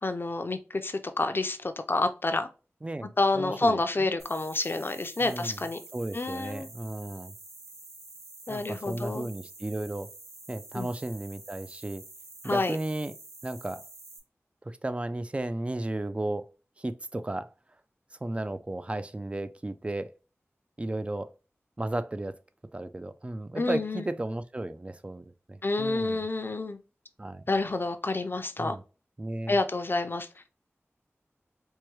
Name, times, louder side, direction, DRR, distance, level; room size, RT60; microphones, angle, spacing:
voice 1, 0.0-2.5 3.2-5.8 6.1-6.7 8.5-9.3 10.7-10.9 12.4-12.8 23.5-24.1 25.6-26.8 27.5-28.8 29.5-30.3, left 2 dB, 45° left, 0.5 m, -28 dB
voice 2, 2.8-4.2 5.2-5.6 5.9-7.3 8.5-10.1 10.5-12.0 12.4-13.1 13.4-13.8 14.6-16.5 16.8-17.5 18.2-20.1 20.8-21.3 21.8-22.4 22.7-26.2 27.2-27.4 28.6-28.8 29.2-29.6, right 1 dB, 25° right, 0.4 m, -34 dB
sound 1, 4.2-14.2, right 2 dB, 90° right, 1.1 m, -48 dB
4.5 x 2.2 x 3.1 m
wide cardioid pair, 60°, 5 cm